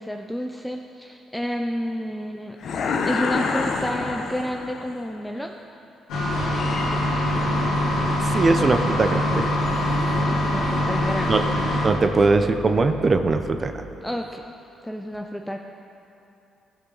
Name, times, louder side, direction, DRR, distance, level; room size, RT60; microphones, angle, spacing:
voice 1, 0.0-2.6 3.1-5.6 10.3-11.3 14.0-14.4 14.8-15.6, equal, 5° left, 3 dB, 0.4 m, -30 dB
sound 1, 2.6-4.9, left 4 dB, 65° left, 0.8 m, -26 dB
sound 2, 6.1-11.9, left 1 dB, 90° left, 2.6 m, -23 dB
voice 2, 8.2-9.5 11.3-11.4 11.8-13.7, right 3 dB, 35° right, 8 dB, 0.6 m, -20 dB
15.0 x 6.2 x 3.9 m, 2.9 s
cardioid pair, 90°, 0 cm